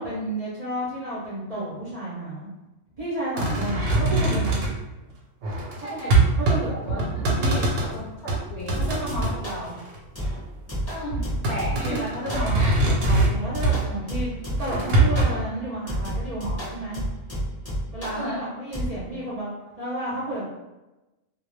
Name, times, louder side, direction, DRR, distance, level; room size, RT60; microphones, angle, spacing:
voice 1, 0.0-2.5 3.0-4.6 5.8-7.7 8.8-9.8 11.7-12.7 13.0-17.0 17.9-19.5 19.8-20.4, right 1 dB, 45° right, -8 dB, 0.5 m, -32 dB
sound 1, 3.4-4.8 5.4-6.6 6.9-7.9 8.3-9.4 9.8-10.4 11.1-13.9 14.6-15.3, right 2 dB, 90° right, 1.0 m, -22 dB
voice 2, 5.8-6.2 6.7-7.0 7.5-8.8 10.9-12.0 12.3-12.8 18.2-18.5, equal, 60° left, -7 dB, 0.5 m, -34 dB
sound 2, 8.7-9.7 10.2-12.0 12.3-12.7 13.0-14.8 15.2-15.4 15.9-18.2 18.7-18.9, equal, 15° left, 0.8 m, -31 dB
2.3 x 2.1 x 3.0 m, 1.0 s
omnidirectional pair, 1.3 m